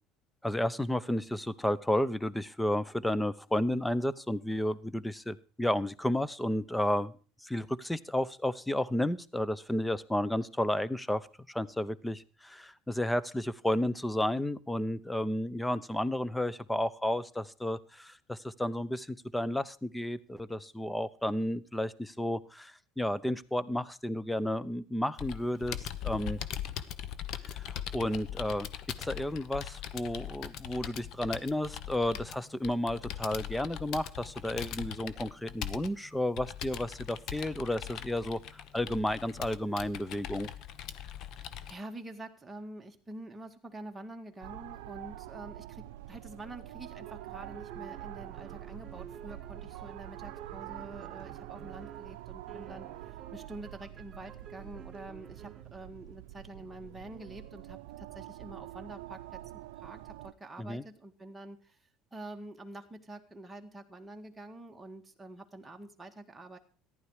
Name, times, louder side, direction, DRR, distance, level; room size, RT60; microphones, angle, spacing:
voice 1, 0.4-7.1 7.4-26.4 27.5-28.7 29.0-40.5 60.6-60.8, left 1 dB, 5° left, 18 dB, 0.7 m, -32 dB
Computer keyboard, 25.2-41.7, left 10 dB, 55° left, 1.0 m, -41 dB
voice 2, 41.4-59.4 59.8-61.8 62.1-66.6, right 2 dB, 10° right, 3 dB, 1.9 m, -47 dB
sound 1, 44.4-60.3, right 15 dB, 90° right, 0.5 m, -46 dB
sound 2, 47.0-55.7, right 8 dB, 40° right, 3.0 m, -51 dB
14.5 x 11.0 x 4.9 m, 0.39 s
supercardioid pair, 110°, 0 cm